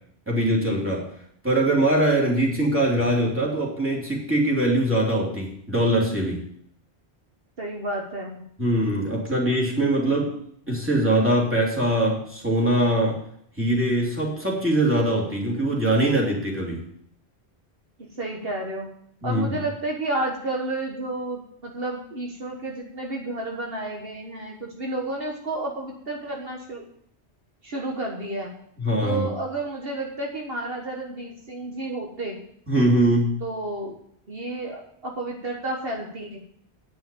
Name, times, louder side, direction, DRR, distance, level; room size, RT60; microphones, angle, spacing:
voice 1, 0.3-1.1 1.4-6.4 8.6-10.4 10.7-13.2 13.6-16.8 19.2-19.6 28.8-29.3 32.7-33.4, right 1 dB, 10° right, -3 dB, 3.0 m, -22 dB
voice 2, 7.6-8.4 18.0-18.9 19.2-26.8 27.6-28.5 29.0-32.4 33.4-34.0 34.3-36.4, right 2 dB, 60° right, -1 dB, 1.7 m, -31 dB
9.5 x 6.2 x 8.4 m, 0.67 s
omnidirectional pair, 1.1 m